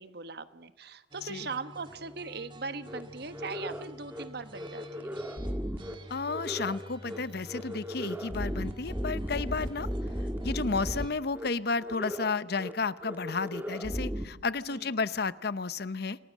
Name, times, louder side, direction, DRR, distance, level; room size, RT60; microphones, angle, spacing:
voice 1, 0.0-5.2 14.7-14.9, right 4 dB, 60° right, 11 dB, 1.2 m, -40 dB
sound 1, 1.1-11.1, equal, 25° right, 2.1 m, -49 dB
sound 2, 2.9-3.0 3.3-3.8 4.1-4.2 4.5-5.9 6.3-6.8 7.0-7.2 7.5-11.1 11.3-11.5 11.8-12.3 12.6-12.7 13.0-14.2, equal, 10° right, 1.6 m, -35 dB
voice 2, 6.1-9.9 10.4-16.2, left 4 dB, 55° left, 16 dB, 0.8 m, -32 dB
28.0 x 18.0 x 7.4 m, 0.94 s
head